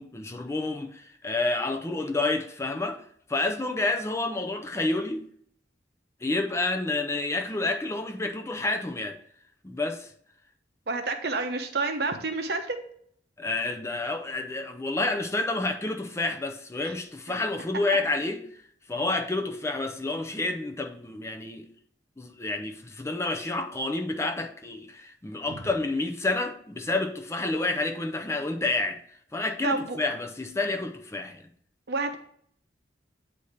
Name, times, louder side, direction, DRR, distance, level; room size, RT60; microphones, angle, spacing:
voice 1, 0.0-3.0 3.3-5.2 6.2-9.2 9.6-10.1 13.4-18.4 18.9-21.7 22.2-29.0 29.3-31.4, left 2 dB, 15° left, 0.5 m, -29 dB
voice 2, 10.9-12.8 16.8-16.9 25.5-25.6 29.6-30.0 31.9-32.2, right 3 dB, 60° right, 0.7 m, -29 dB
8.0 x 2.7 x 4.8 m
head